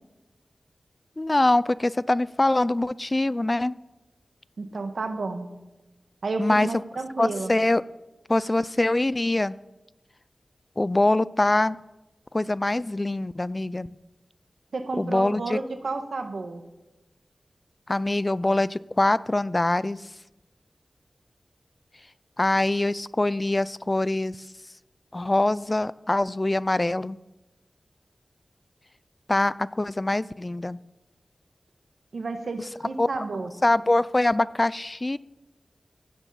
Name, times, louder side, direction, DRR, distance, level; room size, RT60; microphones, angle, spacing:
voice 1, 1.2-3.8 6.4-6.7 7.2-7.8 8.3-9.6 10.8-11.8 12.3-13.9 15.0-15.6 17.9-20.1 22.4-24.5 25.1-27.2 29.3-30.8 33.0-33.2 33.6-35.2, left 2 dB, 30° left, 19 dB, 0.3 m, -24 dB
voice 2, 4.6-5.5 6.2-7.5 14.7-16.6 32.1-33.5, right 3 dB, 80° right, 7 dB, 1.4 m, -31 dB
15.5 x 9.2 x 5.6 m, 1.0 s
wide cardioid pair, 80°, 0 cm